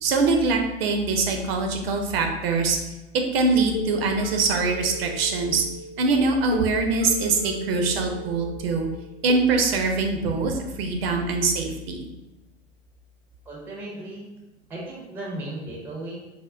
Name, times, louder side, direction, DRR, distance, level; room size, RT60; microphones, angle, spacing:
voice 1, 0.0-2.8 3.1-5.6 6.0-8.9 9.2-12.0, right 3 dB, 55° right, 3 dB, 0.5 m, -23 dB
sound 1, 3.7-9.3, equal, 65° left, 0.8 m, -36 dB
voice 2, 13.5-14.3 14.7-16.2, right 1 dB, 5° right, -3 dB, 0.4 m, -35 dB
3.5 x 2.0 x 2.3 m, 1.0 s
figure-of-eight pair, 100°, 36 cm